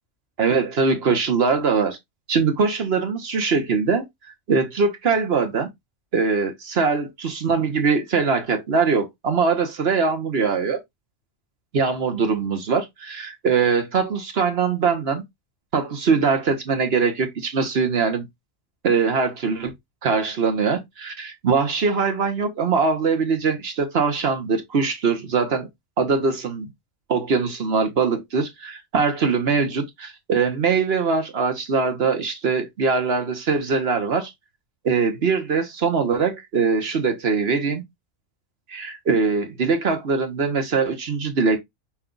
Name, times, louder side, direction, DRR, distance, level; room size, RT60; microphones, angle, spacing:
voice 1, 0.4-2.0 2.3-4.1 4.5-5.7 6.1-10.8 11.7-15.2 15.7-18.3 18.8-19.7 20.0-25.7 26.0-26.7 27.1-34.3 34.8-37.8 38.7-41.6, right 5 dB, 55° right, 1.1 m, -22 dB
5.8 x 2.3 x 3.7 m
omnidirectional pair, 1.3 m